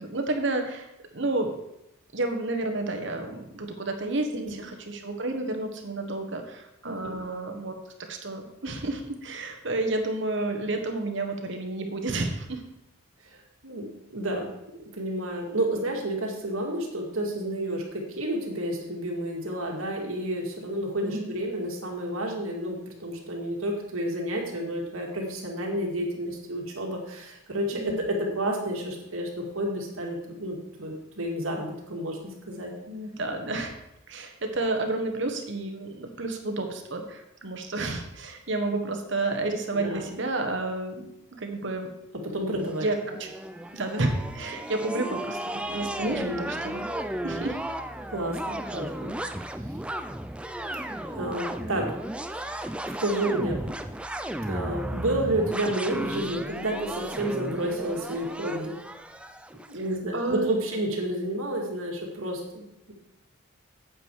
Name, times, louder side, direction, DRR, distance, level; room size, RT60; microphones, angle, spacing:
voice 1, 0.0-1.5 2.1-4.3 4.6-7.7 8.1-12.6 21.0-21.3 27.7-28.0 32.9-33.8 34.1-41.9 42.8-43.3 43.7-45.4 45.7-46.9 47.2-47.6 60.1-60.6, right 2 dB, 55° right, 5 dB, 1.3 m, -30 dB
voice 2, 4.3-4.6 6.8-7.2 13.3-14.5 14.9-32.7 39.7-40.1 42.1-42.9 46.0-46.5 48.1-49.1 51.1-52.0 52.3-52.6 53.0-53.7 54.5-58.8 59.7-62.9, right 1 dB, 80° right, 0 dB, 2.2 m, -30 dB
sound 1, 42.7-59.7, right 1 dB, 5° right, 0.3 m, -34 dB
9.0 x 8.1 x 4.7 m, 0.84 s
head